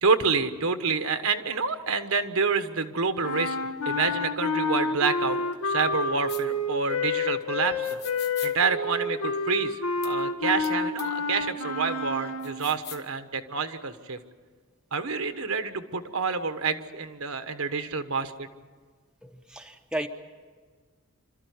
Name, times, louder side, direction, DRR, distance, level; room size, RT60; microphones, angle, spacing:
voice 1, 0.0-3.6 3.8-8.0 8.4-9.8 10.0-14.2 14.9-18.5, right 5 dB, 75° right, 8 dB, 1.3 m, -28 dB
sound 1, 3.2-12.8, left 3 dB, 85° left, 1.5 m, -29 dB
sound 2, 6.3-6.4 7.8-8.5 10.0-10.1 10.6-10.7 11.0-11.1 12.4-13.1, left 11 dB, 45° left, 1.5 m, -41 dB
voice 2, 19.2-20.1, right 1 dB, 5° right, 5 dB, 0.7 m, -34 dB
28.0 x 13.5 x 9.5 m, 1.5 s
head